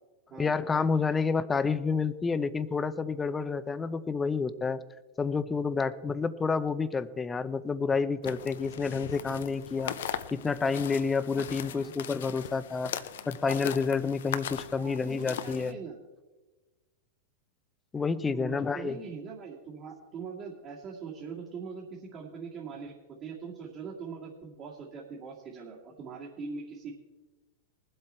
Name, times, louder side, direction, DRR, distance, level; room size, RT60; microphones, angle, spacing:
voice 1, 0.4-4.8 5.2-9.9 10.3-12.9 13.3-15.8 17.9-19.0, left 5 dB, 15° left, 13 dB, 0.7 m, -29 dB
sound 1, 8.2-15.7, left 10 dB, 75° left, 0.7 m, -39 dB
voice 2, 14.7-16.0 18.3-22.9 23.2-26.9, right 5 dB, 40° right, -4 dB, 2.4 m, -42 dB
19.5 x 7.9 x 4.4 m, 1.2 s
hypercardioid pair, 110°, 0 cm